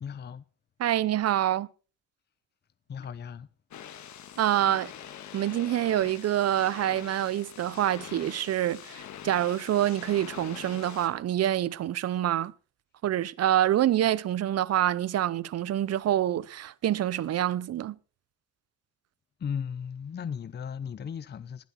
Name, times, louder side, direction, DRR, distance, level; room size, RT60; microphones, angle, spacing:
voice 1, 0.0-0.4 2.9-3.5 19.4-21.6, left 7 dB, 35° left, 0.6 m, -36 dB
voice 2, 0.8-1.7 4.4-4.9 5.3-12.5 13.0-18.0, right 12 dB, 55° right, 0.7 m, -26 dB
sound 1, 3.7-11.1, left 9 dB, 70° left, 1.7 m, -44 dB
20.0 x 8.0 x 4.2 m
cardioid pair, 90°, 30 cm